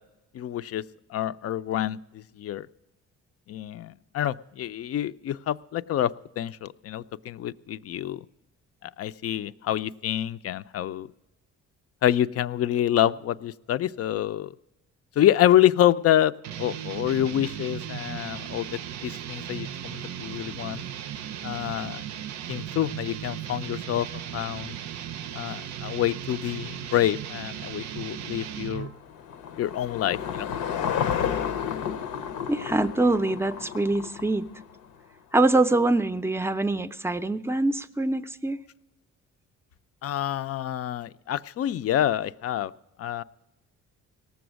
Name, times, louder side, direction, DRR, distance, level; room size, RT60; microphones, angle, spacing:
voice 1, 0.3-0.8 1.1-2.7 3.5-8.2 8.8-11.1 12.0-14.5 15.2-16.3 16.6-18.7 19.0-20.8 21.4-22.0 22.5-24.1 24.3-24.8 25.3-28.9 29.6-30.5 40.0-42.7 43.0-43.2, left 12 dB, 50° left, 14 dB, 0.4 m, -27 dB
sound 1, 16.4-29.0, right 10 dB, 65° right, 0.5 m, -36 dB
Car passing by / Engine, 28.4-34.8, left 8 dB, 80° left, 0.7 m, -32 dB
voice 2, 32.5-34.5 35.3-38.6, right 2 dB, 10° right, 11 dB, 0.5 m, -24 dB
18.0 x 7.0 x 6.2 m, 0.98 s
cardioid pair, 90°, 30 cm